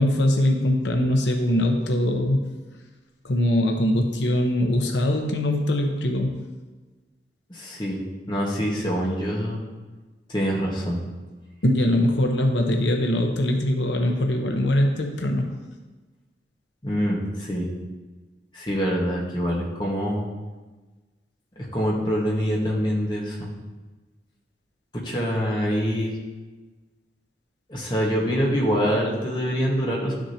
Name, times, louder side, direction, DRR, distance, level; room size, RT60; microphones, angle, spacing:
voice 1, 0.0-2.4 3.2-6.4 11.6-15.5, left 1 dB, 90° left, 3 dB, 0.9 m, -22 dB
voice 2, 7.5-8.0 8.3-9.6 10.3-11.0 16.8-17.6 18.5-20.2 21.6-23.4 25.0-26.2 27.7-30.1, equal, 25° left, -3 dB, 1.5 m, -25 dB
11.5 x 6.4 x 2.9 m, 1.3 s
head